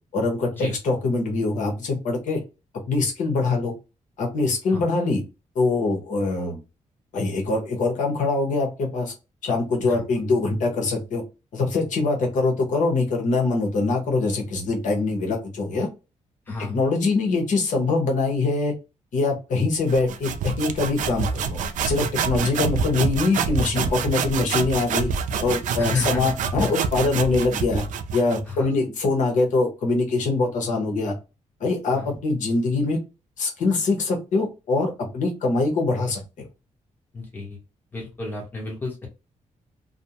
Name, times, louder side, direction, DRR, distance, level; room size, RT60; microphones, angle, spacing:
voice 1, 0.1-2.4 2.9-3.7 4.2-5.2 5.5-6.6 7.1-9.1 9.4-11.2 11.5-15.9 16.6-18.7 19.1-25.1 25.4-27.8 28.1-31.1 31.6-33.0 33.4-36.2, left 3 dB, 75° left, 1 dB, 0.9 m, -23 dB
voice 2, 16.5-16.8 25.8-26.3 26.6-26.7 28.5-28.7 31.9-32.2 37.1-37.6 37.9-39.1, left 3 dB, 15° left, -1 dB, 1.0 m, -31 dB
sound 1, 19.9-28.5, right 6 dB, 80° right, 0.4 m, -27 dB
2.5 x 2.1 x 2.8 m, 0.28 s
wide cardioid pair, 145°, 13 cm